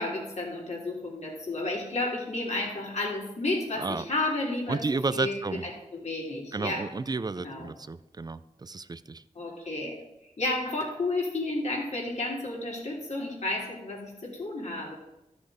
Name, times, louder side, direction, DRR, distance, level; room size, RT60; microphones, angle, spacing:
voice 1, 0.0-4.8 5.1-6.9 7.4-7.7 9.4-10.0 10.4-14.9, left 2 dB, 60° left, -2 dB, 3.5 m, -32 dB
voice 2, 4.7-5.6 6.5-9.2, right 3 dB, 30° right, 14 dB, 0.4 m, -32 dB
13.5 x 6.3 x 5.0 m, 0.92 s
wide cardioid pair, 75°, 13 cm